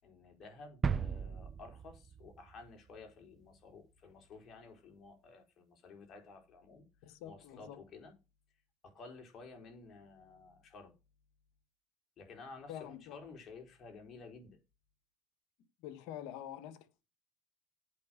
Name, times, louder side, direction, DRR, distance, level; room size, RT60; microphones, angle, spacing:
voice 1, 0.0-8.1 8.8-10.9 12.2-14.6, left 4 dB, 50° left, 4.2 m, -53 dB
sound 1, 0.8-2.7 3.0-3.1, right 6 dB, 35° right, 0.5 m, -36 dB
voice 2, 7.0-7.8 12.7-13.2 15.8-17.0, left 11 dB, 80° left, 1.6 m, -46 dB
8.3 x 6.0 x 6.3 m
supercardioid pair, 90°, 0 cm